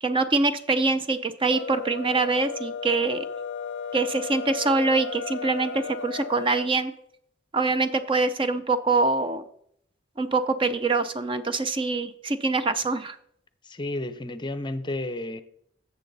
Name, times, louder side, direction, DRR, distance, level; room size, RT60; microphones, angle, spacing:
voice 1, 0.0-3.2 3.9-6.9 7.5-9.4 10.2-13.2, right 3 dB, 30° right, 10 dB, 0.6 m, -24 dB
sound 1, 1.4-6.7, left 5 dB, 85° left, 0.4 m, -34 dB
voice 2, 13.6-15.4, left 1 dB, 25° left, 12 dB, 0.7 m, -32 dB
14.5 x 7.5 x 4.1 m, 0.71 s
head